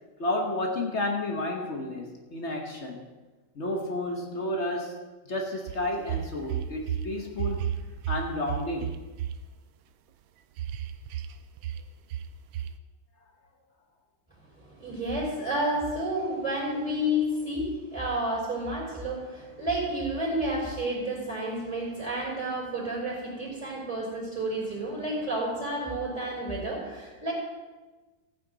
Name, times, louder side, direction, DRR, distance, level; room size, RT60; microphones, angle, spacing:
voice 1, 0.2-3.0 3.6-5.0 5.3-7.7 8.1-8.9, left 1 dB, 40° left, 1 dB, 1.3 m, -31 dB
sound 1, 5.7-7.1 7.3-9.3 10.6-11.3 11.6-11.8 12.1-12.3 12.5-12.7, right 10 dB, 85° right, 1.4 m, -32 dB
voice 2, 14.6-27.3, right 1 dB, ahead, -6 dB, 4.4 m, -30 dB
15.5 x 9.1 x 3.9 m, 1.2 s
omnidirectional pair, 2.1 m